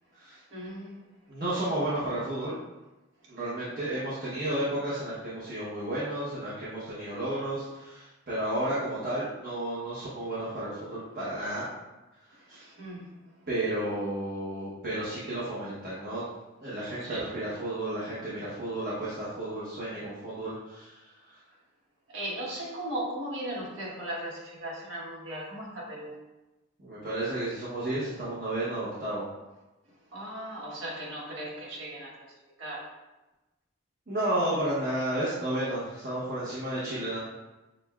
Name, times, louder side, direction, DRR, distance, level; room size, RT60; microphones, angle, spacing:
voice 1, 0.5-1.0 12.5-13.1 17.0-17.3 22.1-26.2 30.1-32.3 32.6-32.9, right 1 dB, 75° right, -5 dB, 1.2 m, -37 dB
voice 2, 1.3-2.6 3.3-11.6 12.5-12.6 13.5-16.2 16.6-21.4 26.8-29.2 34.1-37.2, right 1 dB, 50° right, -10 dB, 0.9 m, -32 dB
6.1 x 2.2 x 2.3 m, 1.1 s
head